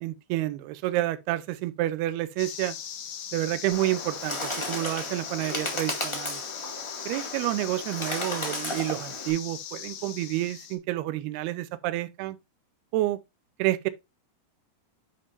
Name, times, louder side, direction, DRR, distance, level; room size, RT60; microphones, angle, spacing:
voice 1, 0.0-2.8 3.3-6.4 7.1-12.4 12.9-13.2 13.6-13.9, right 16 dB, 90° right, 2.7 m, -29 dB
sound 1, 2.4-10.8, left 9 dB, 70° left, 2.9 m, -39 dB
Bird, 3.7-9.3, left 1 dB, 25° left, 0.6 m, -34 dB
9.6 x 5.5 x 2.6 m
omnidirectional pair, 4.5 m